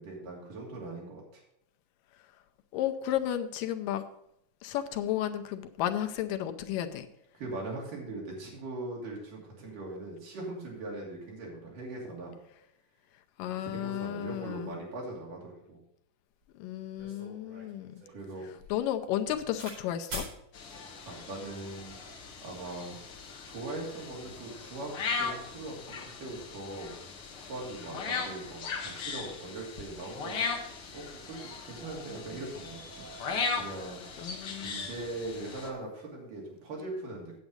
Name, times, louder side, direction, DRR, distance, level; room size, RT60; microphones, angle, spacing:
voice 1, 0.0-1.4 7.3-12.3 13.4-15.8 18.1-18.5 21.1-22.0 22.4-23.0 23.4-27.0 27.4-30.4 30.9-33.0 33.6-34.0 34.6-37.3, right 2 dB, 70° right, -3 dB, 4.3 m, -40 dB
voice 2, 2.7-4.0 4.6-7.1 13.4-14.8 16.6-18.0 18.4-20.3 34.2-34.7, left 11 dB, 90° left, 8 dB, 2.4 m, -33 dB
sound 1, 16.4-16.5 17.0-19.8 20.1-20.3 21.2-21.6, right 1 dB, 50° right, 5.8 m, -44 dB
sound 2, 20.5-35.7, left 5 dB, 55° left, 1.7 m, -38 dB
9.4 x 8.1 x 5.1 m, 0.76 s
omnidirectional pair, 3.8 m